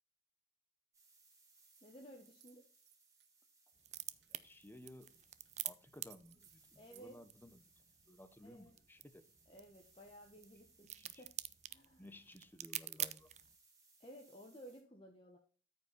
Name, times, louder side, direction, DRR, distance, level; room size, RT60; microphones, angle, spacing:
sound 1, 0.9-14.8, right 3 dB, 20° right, 4.4 m, -70 dB
sound 2, 1.7-1.9 2.2-3.3 3.7-4.9 5.4-5.6 5.8-7.1, right 13 dB, 75° right, 1.3 m, -66 dB
voice 1, 1.8-2.7 6.7-7.2 8.4-8.7 9.5-11.3 11.7-12.1 14.0-15.4, equal, 30° left, 1.3 m, -56 dB
sound 3, 3.8-13.6, right 13 dB, 40° right, 0.6 m, -48 dB
voice 2, 4.3-5.2 5.6-7.7 8.1-9.2 11.0-11.2 12.0-13.3, left 1 dB, 10° left, 0.8 m, -57 dB
13.5 x 5.4 x 4.1 m
head